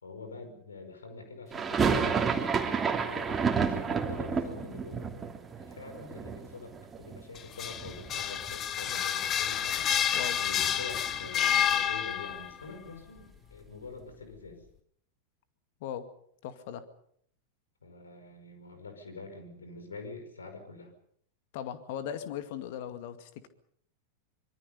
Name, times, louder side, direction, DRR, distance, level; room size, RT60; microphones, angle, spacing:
voice 1, 0.0-2.8 3.1-5.1 5.6-14.7 17.8-20.9, left 3 dB, 70° left, 8 dB, 5.3 m, -45 dB
sound 1, 1.5-7.5 7.7-8.6 8.8-8.9 9.2-11.4, right 5 dB, 15° right, 3.1 m, -31 dB
sound 2, 7.4-12.5, left 9 dB, 30° left, 1.2 m, -29 dB
voice 2, 16.4-16.8 21.5-23.5, left 9 dB, 50° left, 10 dB, 2.2 m, -38 dB
25.0 x 24.0 x 5.5 m, 0.67 s
figure-of-eight pair, 90°, 0 cm